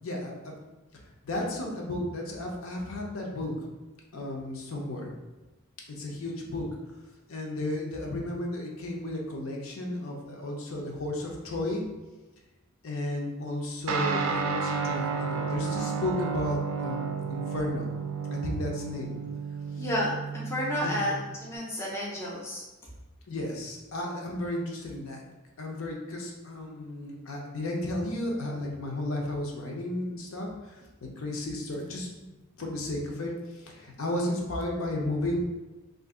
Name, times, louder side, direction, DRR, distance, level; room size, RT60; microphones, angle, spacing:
voice 1, 0.0-0.6 1.2-3.7 4.1-5.1 5.9-6.7 7.3-11.8 12.8-17.9 18.3-19.2 19.8-19.9 20.8-20.9 23.3-25.2 25.6-35.4, left 1 dB, 70° left, 0 dB, 0.6 m, -33 dB
Guitar, 13.9-21.6, right 6 dB, 75° right, 0.4 m, -32 dB
voice 2, 19.8-22.6, left 1 dB, 10° left, -4 dB, 0.4 m, -31 dB
2.6 x 2.5 x 3.6 m, 1.1 s
head